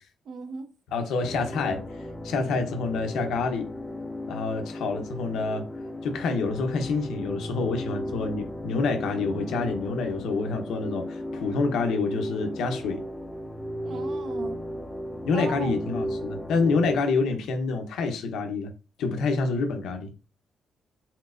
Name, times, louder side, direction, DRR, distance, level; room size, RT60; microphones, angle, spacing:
voice 1, 0.3-0.7 13.8-14.6 15.3-15.7, right 4 dB, 55° right, 0.7 m, -37 dB
voice 2, 0.9-1.8 2.2-3.7 4.3-5.6 6.0-13.0 15.2-18.7 19.0-20.1, left 4 dB, 85° left, 0.8 m, -27 dB
sound 1, 1.2-17.0, equal, 10° left, 0.4 m, -35 dB
4.4 x 3.8 x 2.5 m
cardioid pair, 145°, 0 cm